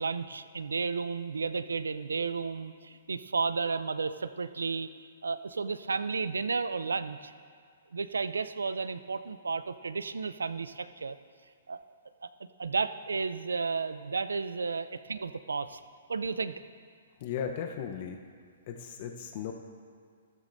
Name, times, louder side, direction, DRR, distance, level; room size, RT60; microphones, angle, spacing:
voice 1, 0.0-7.3 7.9-11.2 11.7-11.8 12.2-12.3 12.6-15.8 16.1-16.5, right 4 dB, 90° right, 13 dB, 0.5 m, -33 dB
voice 2, 17.2-18.2 18.7-19.5, left 8 dB, 45° left, 4 dB, 0.8 m, -36 dB
13.5 x 12.5 x 2.7 m, 2.1 s
hypercardioid pair, 130°, 0 cm